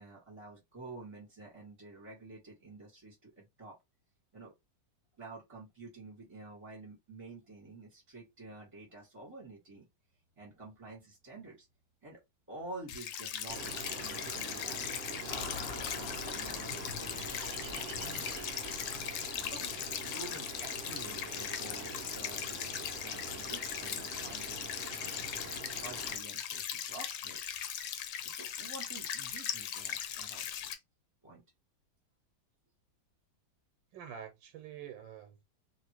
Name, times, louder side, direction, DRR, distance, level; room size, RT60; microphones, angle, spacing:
voice 1, 0.0-3.8 4.3-4.5 5.2-9.9 10.4-11.7 12.0-12.2 12.5-18.2 19.4-25.2 25.5-27.6 28.2-30.8 31.2-31.4, right 2 dB, 15° right, 1.5 m, -50 dB
sound 1, 12.9-30.7, left 9 dB, 80° left, 1.3 m, -39 dB
Ocean, 13.5-26.2, right 4 dB, 55° right, 0.8 m, -45 dB
Car passing by / Traffic noise roadway noise, 15.3-19.9, left 4 dB, 65° left, 0.5 m, -47 dB
voice 2, 33.9-35.4, right 8 dB, 85° right, 1.3 m, -47 dB
2.8 x 2.8 x 2.9 m
omnidirectional pair, 2.0 m